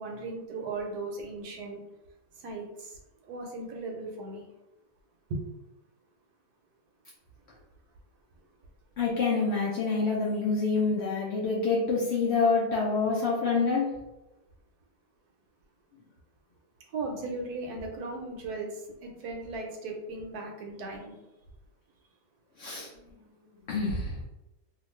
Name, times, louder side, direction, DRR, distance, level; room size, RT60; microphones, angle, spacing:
voice 1, 0.0-1.8 2.4-3.0 3.2-4.5 5.3-5.4 16.9-21.2, right 3 dB, 70° right, 1 dB, 1.1 m, -37 dB
voice 2, 9.0-13.9 22.6-22.9 23.7-24.1, left 4 dB, 75° left, -5 dB, 0.6 m, -27 dB
2.9 x 2.3 x 3.1 m, 0.97 s
omnidirectional pair, 1.8 m